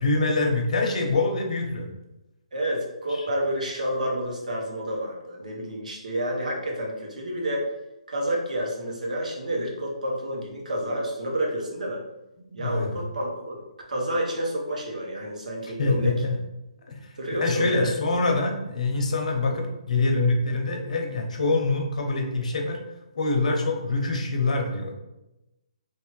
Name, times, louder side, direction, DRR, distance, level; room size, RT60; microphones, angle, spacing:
voice 1, 0.0-1.9 3.1-3.3 12.5-12.9 15.6-16.4 16.9-22.8 23.2-24.9, left 3 dB, 70° left, 2 dB, 0.8 m, -25 dB
voice 2, 2.5-7.6 8.1-12.0 12.5-13.6 13.9-16.1 17.2-17.9, right 1 dB, 85° right, -1 dB, 1.0 m, -29 dB
3.2 x 2.7 x 3.0 m, 0.95 s
hypercardioid pair, 150°, 4 cm